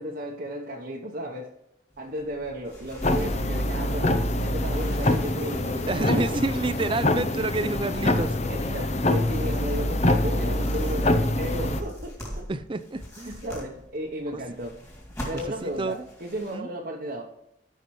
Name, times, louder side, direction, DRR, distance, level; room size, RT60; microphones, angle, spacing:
voice 1, 0.0-1.5 2.0-6.4 7.0-7.2 8.4-12.5 13.3-14.8 15.3-17.2, equal, 50° right, -2 dB, 0.9 m, -34 dB
sound 1, 1.9-16.6, equal, 15° left, 2.6 m, -44 dB
sound 2, 3.0-11.8, left 1 dB, 35° left, 0.7 m, -25 dB
voice 2, 5.9-8.4 8.9-9.0 12.5-13.4 14.3-14.4 15.6-16.0 16.5-16.7, right 2 dB, 25° right, 13 dB, 0.4 m, -29 dB
14.0 x 5.6 x 3.1 m, 0.83 s
head